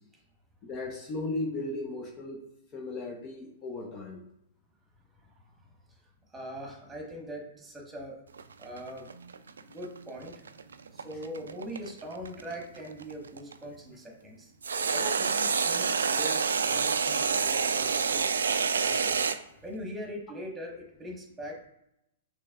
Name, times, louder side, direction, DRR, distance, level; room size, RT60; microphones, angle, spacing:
voice 1, 0.6-2.4 2.7-4.2 14.7-15.2, left 2 dB, 30° left, 1 dB, 0.7 m, -36 dB
voice 2, 6.3-8.2 8.6-9.1 9.6-10.3 10.9-14.5 14.9-18.3 18.7-19.3 19.6-21.7, equal, 10° right, 0 dB, 1.4 m, -41 dB
sound 1, 8.3-13.5 14.6-19.4, right 5 dB, 75° right, 0.3 m, -28 dB
6.2 x 3.0 x 2.4 m, 0.82 s
figure-of-eight pair, 110°, 0 cm